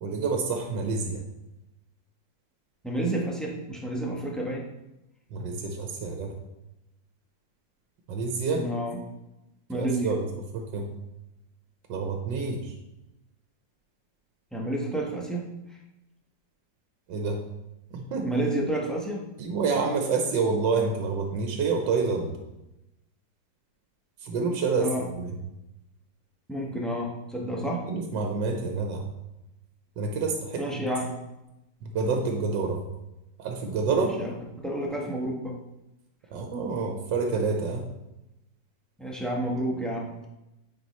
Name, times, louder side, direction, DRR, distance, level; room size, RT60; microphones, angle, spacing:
voice 1, 0.0-1.2 5.3-6.3 8.1-8.6 9.7-10.3 10.5-10.9 11.9-12.7 17.1-17.5 17.9-18.3 19.4-22.3 24.2-25.3 27.6-29.0 30.0-30.9 31.8-32.8 33.4-34.1 36.3-37.9, right 4 dB, 80° right, 2 dB, 1.5 m, -28 dB
voice 2, 2.8-4.7 8.5-9.0 9.7-10.1 14.5-15.5 18.2-19.2 24.8-25.1 26.5-27.9 30.6-31.2 33.9-35.6 39.0-40.3, right 1 dB, ahead, -2 dB, 0.5 m, -30 dB
9.4 x 4.5 x 3.0 m, 0.94 s
omnidirectional pair, 2.0 m